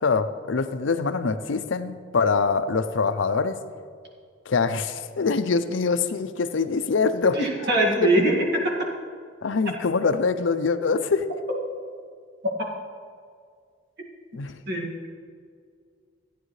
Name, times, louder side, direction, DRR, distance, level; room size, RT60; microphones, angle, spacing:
voice 1, 0.0-3.6 4.5-7.4 9.4-11.3 14.3-14.5, left 4 dB, 70° left, 10 dB, 0.5 m, -24 dB
voice 2, 7.3-8.9 12.6-12.7 14.7-15.1, right 1 dB, 60° right, -2 dB, 2.1 m, -23 dB
15.0 x 9.8 x 3.2 m, 2.1 s
head